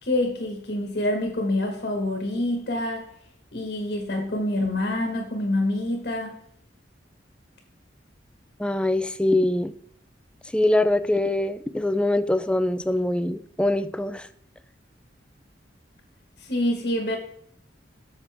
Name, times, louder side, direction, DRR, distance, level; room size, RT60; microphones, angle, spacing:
voice 1, 0.0-3.1 3.5-6.3 16.4-17.2, left 1 dB, 55° left, 1.5 m, -26 dB
voice 2, 8.6-9.7 10.5-14.3, left 1 dB, 5° left, 0.4 m, -23 dB
8.3 x 6.7 x 3.5 m
head